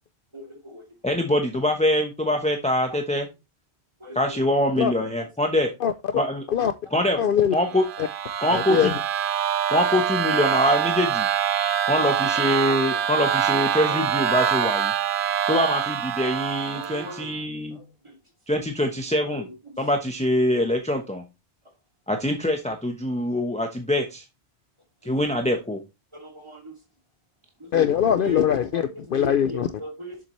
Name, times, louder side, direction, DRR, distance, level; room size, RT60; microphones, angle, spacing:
voice 1, 0.3-0.8 4.0-4.2 5.2-5.3 7.2-7.3 9.7-9.9 12.0-12.4 13.9-14.0 16.7-17.3 17.7-18.1 19.3-19.8 26.1-26.7 27.6-27.7 28.2-28.4 28.7-30.2, left 1 dB, 25° right, 2.5 m, -39 dB
voice 2, 1.0-3.3 4.1-5.7 6.1-6.4 6.9-7.2 7.5-7.8 8.4-8.9 9.7-11.3 11.9-14.9 15.5-17.8 18.5-19.5 19.8-21.2 22.1-24.2 25.1-25.8, left 1 dB, 5° left, 0.9 m, -24 dB
voice 3, 5.8-6.2 6.5-6.7 7.2-7.5 8.5-8.9 27.7-29.7, left 9 dB, 60° left, 0.7 m, -22 dB
sound 1, 7.6-17.3, right 10 dB, 55° right, 0.7 m, -25 dB
7.3 x 7.2 x 3.1 m
omnidirectional pair, 1.2 m